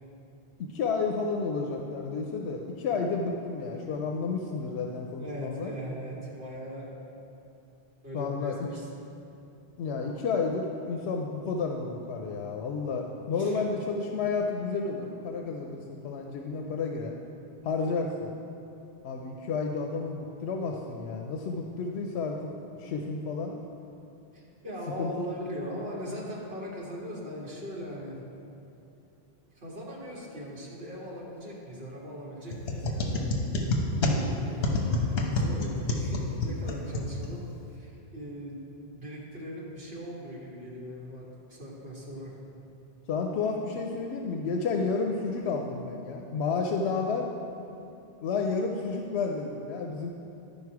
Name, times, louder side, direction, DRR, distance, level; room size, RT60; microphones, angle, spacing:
voice 1, 0.6-5.7 8.1-8.7 9.8-17.1 17.6-18.3 19.0-22.5 22.8-23.5 25.0-25.1 43.1-47.3 48.2-50.1, left 4 dB, 85° left, 2 dB, 0.9 m, -31 dB
voice 2, 5.2-6.9 8.0-8.9 13.4-13.6 24.3-28.2 29.5-33.3 34.1-41.2 41.5-42.3, equal, 65° right, -5 dB, 2.1 m, -40 dB
sound 1, 32.5-37.6, left 2 dB, 70° left, 1.2 m, -29 dB
11.5 x 5.4 x 4.7 m, 2.8 s
omnidirectional pair, 1.1 m